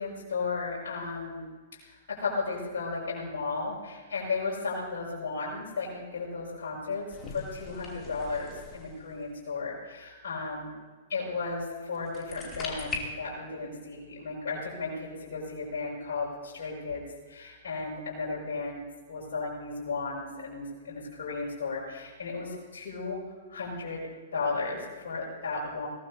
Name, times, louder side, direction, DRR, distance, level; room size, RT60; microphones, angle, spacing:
voice 1, 0.0-10.7 11.1-23.2 23.5-24.0 24.3-25.9, left 4 dB, 60° left, -6 dB, 6.2 m, -35 dB
sound 1, 7.1-9.3 11.9-13.0, left 4 dB, 25° left, 2.9 m, -40 dB
21.0 x 18.5 x 2.8 m, 1.4 s
figure-of-eight pair, 105°, 0 cm